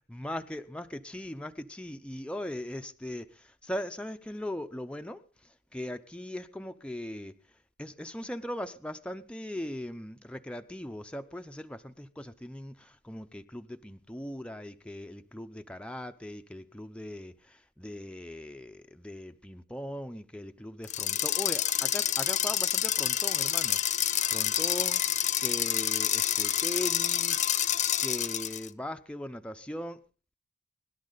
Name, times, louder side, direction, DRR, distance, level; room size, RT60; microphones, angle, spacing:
voice 1, 0.1-5.2 5.7-7.3 7.8-25.0 25.4-27.6 28.0-30.0, left 1 dB, 5° left, 0.7 m, -39 dB
sound 1, 20.8-28.7, left 11 dB, 35° left, 0.8 m, -28 dB
24.0 x 11.5 x 4.0 m
head